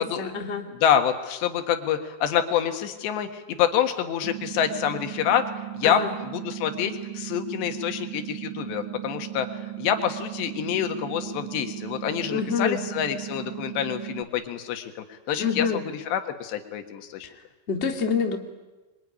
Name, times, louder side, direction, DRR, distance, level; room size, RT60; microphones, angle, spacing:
voice 1, 0.0-0.7 5.8-6.1 12.3-12.8 15.4-15.8 17.2-17.3 17.7-18.4, left 6 dB, 40° left, 3 dB, 0.9 m, -27 dB
voice 2, 0.7-5.4 5.7-15.7 15.9-17.3, left 9 dB, 75° left, 7 dB, 3.7 m, -27 dB
sound 1, 4.2-14.2, right 16 dB, 85° right, 1.8 m, -36 dB
26.0 x 23.0 x 9.9 m, 1.2 s
omnidirectional pair, 5.2 m